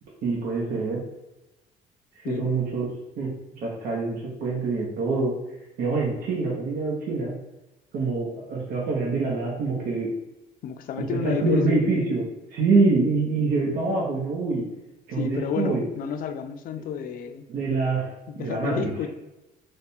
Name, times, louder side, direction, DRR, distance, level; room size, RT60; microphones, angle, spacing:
voice 1, 0.2-1.0 2.2-2.9 3.2-3.3 3.6-5.3 5.8-7.4 7.9-10.1 11.2-12.2 12.5-14.6 15.1-15.8 17.5-18.1 18.4-18.9, right 3 dB, 65° right, -3 dB, 0.9 m, -25 dB
voice 2, 2.2-2.6 10.6-11.9 15.1-17.5 18.3-19.1, left 7 dB, 55° left, 7 dB, 0.4 m, -30 dB
3.3 x 2.2 x 4.2 m, 0.97 s
cardioid pair, 110°, 17 cm